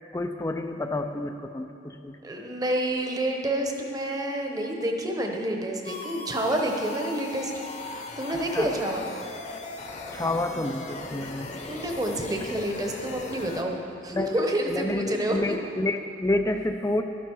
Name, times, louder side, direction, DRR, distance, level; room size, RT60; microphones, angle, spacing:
voice 1, 0.1-2.2 8.3-8.7 10.1-11.5 14.1-17.0, left 2 dB, 15° left, 7 dB, 0.4 m, -29 dB
voice 2, 2.2-7.5 8.2-9.1 11.7-15.5, right 1 dB, 20° right, 2 dB, 0.9 m, -28 dB
sound 1, 5.8-13.6, left 2 dB, 35° left, 0.9 m, -38 dB
12.0 x 10.5 x 4.6 m, 2.5 s
head